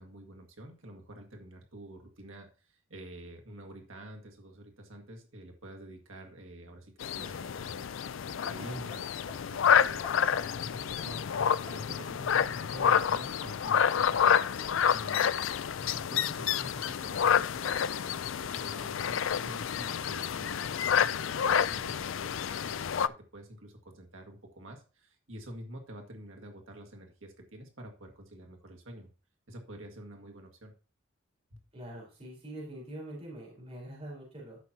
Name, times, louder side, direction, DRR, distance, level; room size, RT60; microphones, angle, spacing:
voice 1, 0.0-7.9 8.4-11.2 11.7-15.3 15.8-17.9 18.4-29.1 29.5-30.7, right 1 dB, 90° right, 3 dB, 1.9 m, -48 dB
sound 1, 7.0-23.1, left 8 dB, 75° left, 0.4 m, -29 dB
Hammer, 8.9-13.3 14.1-14.2, left 2 dB, 35° left, 4.6 m, -52 dB
voice 2, 31.7-34.6, right 1 dB, 30° right, -4 dB, 4.1 m, -44 dB
13.5 x 6.0 x 2.8 m, 0.36 s
head